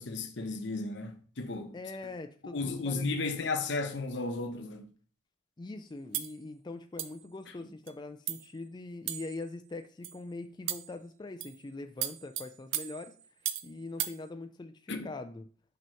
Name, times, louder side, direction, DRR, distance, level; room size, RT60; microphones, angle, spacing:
voice 1, 0.0-1.8 2.5-4.8 14.9-15.1, left 3 dB, 60° left, 0.8 m, -34 dB
voice 2, 1.7-3.1 5.6-13.1 13.6-15.5, left 2 dB, 20° left, 0.3 m, -42 dB
sound 1, 6.1-6.4 7.0-7.2 7.9-8.0 8.3-8.5 9.1-9.4 10.0-10.2 10.7-11.0 11.4-11.6 12.0-13.7 14.0-14.2, right 11 dB, 70° right, 0.5 m, -36 dB
6.0 x 2.9 x 5.5 m
head